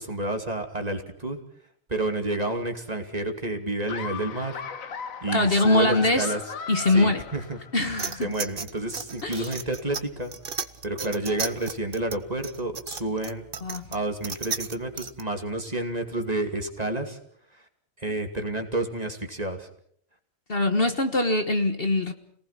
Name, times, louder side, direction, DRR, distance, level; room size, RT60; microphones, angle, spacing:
voice 1, 0.0-1.4 1.9-4.6 5.2-6.4 6.9-7.6 8.2-10.3 10.8-13.4 13.9-17.2 17.5-17.6 18.0-19.7, right 2 dB, 30° right, 5 dB, 2.6 m, -30 dB
Laughter, 3.9-7.9, left 6 dB, 75° left, 1.6 m, -37 dB
voice 2, 5.3-6.4 6.7-7.2 7.7-8.3 9.2-9.5 13.6-13.9 20.5-22.1, left 2 dB, 45° left, 7 dB, 1.6 m, -23 dB
sound 1, 8.0-15.2, right 6 dB, 45° right, 1.2 m, -35 dB
29.0 x 19.0 x 5.9 m, 0.64 s
omnidirectional pair, 1.4 m